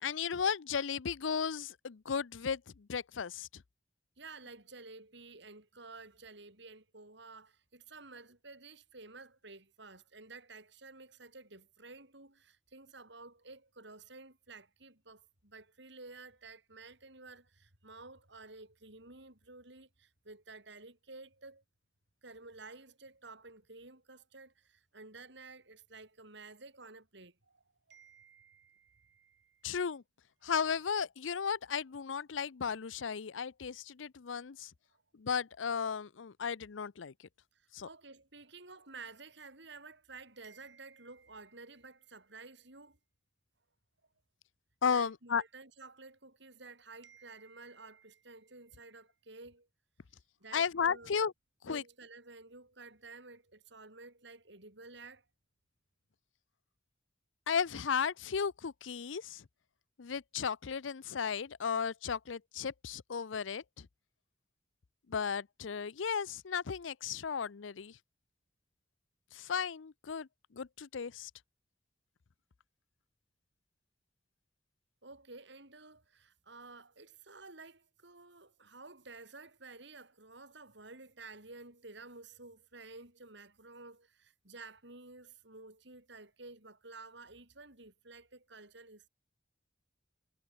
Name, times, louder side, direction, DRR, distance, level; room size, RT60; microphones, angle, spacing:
voice 1, 0.0-3.6 29.6-30.0 30.4-34.7 35.2-37.1 37.7-37.9 44.8-45.4 50.5-51.3 51.6-51.8 57.5-59.4 60.0-63.9 65.1-68.0 69.3-71.3, left 6 dB, 90° left, 0.6 m, -35 dB
voice 2, 4.2-21.6 22.2-29.8 30.4-30.5 37.5-43.0 44.9-49.7 50.4-51.1 51.7-55.2 75.0-89.1, right 3 dB, 65° right, 7.7 m, -52 dB
head